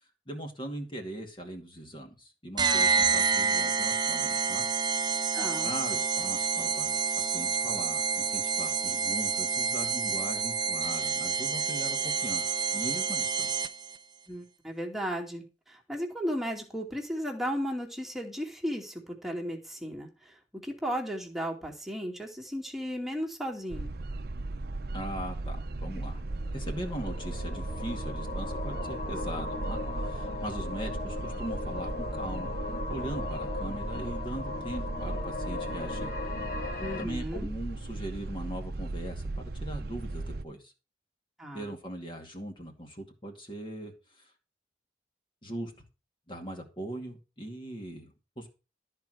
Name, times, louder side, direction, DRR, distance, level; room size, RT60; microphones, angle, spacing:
voice 1, 0.3-4.6 5.6-13.6 24.9-26.2 26.5-32.5 32.9-36.1 37.0-40.7 41.5-44.3 45.4-45.7 46.3-48.5, right 1 dB, 30° left, 2 dB, 2.3 m, -40 dB
sound 1, 2.6-14.0, right 5 dB, 25° right, 0.7 m, -28 dB
voice 2, 5.3-5.7 14.3-23.9 36.8-37.5 41.4-41.7, equal, ahead, -1 dB, 2.4 m, -35 dB
sound 2, 23.7-40.4, right 2 dB, 60° right, 0.7 m, -37 dB
sound 3, 26.3-37.1, left 3 dB, 45° left, 2.2 m, -38 dB
13.5 x 4.7 x 7.8 m, 0.31 s
head